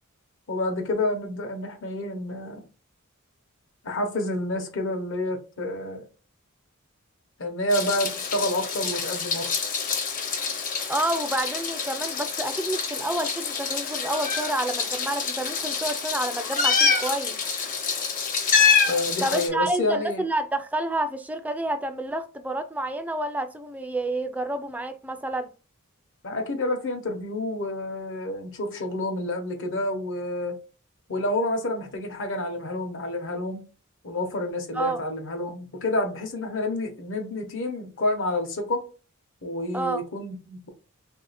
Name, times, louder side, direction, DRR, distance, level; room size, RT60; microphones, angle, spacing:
voice 1, 0.5-2.6 3.8-6.0 7.4-9.4 18.9-20.2 26.2-30.5 31.1-33.6 34.0-38.8 39.4-40.7, left 1 dB, 60° left, 0.9 m, -29 dB
Meow, 7.7-19.5, left 5 dB, 40° left, 0.7 m, -26 dB
voice 2, 10.9-17.4 19.2-25.5 34.7-35.0 39.7-40.0, right 1 dB, 5° right, 0.3 m, -29 dB
3.1 x 2.7 x 4.0 m
head